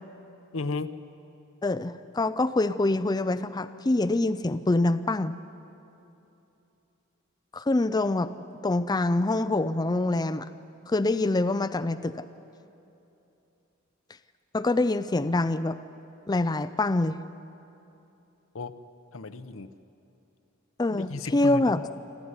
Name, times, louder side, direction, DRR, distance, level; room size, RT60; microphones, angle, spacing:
voice 1, 0.5-0.9 18.5-18.9 19.1-19.7 20.9-21.7, left 3 dB, 75° left, 11 dB, 0.9 m, -34 dB
voice 2, 1.6-5.3 7.5-8.3 8.6-10.5 10.9-12.2 14.5-15.8 16.3-17.2 20.8-21.8, left 2 dB, 20° left, 11 dB, 0.4 m, -25 dB
26.0 x 14.0 x 9.6 m, 2.8 s
head